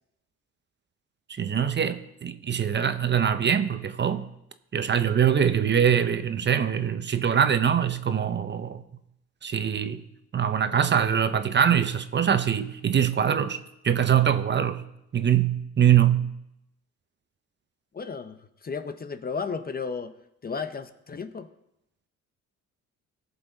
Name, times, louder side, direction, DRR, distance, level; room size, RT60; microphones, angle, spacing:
voice 1, 1.3-4.2 4.7-8.8 9.4-10.0 10.3-13.6 13.8-14.8 15.1-16.3, right 8 dB, 35° right, 0.7 m, -23 dB
voice 2, 17.9-20.1 20.4-21.5, left 5 dB, 30° left, 0.8 m, -34 dB
17.0 x 7.1 x 4.0 m
cardioid pair, 90°, 30 cm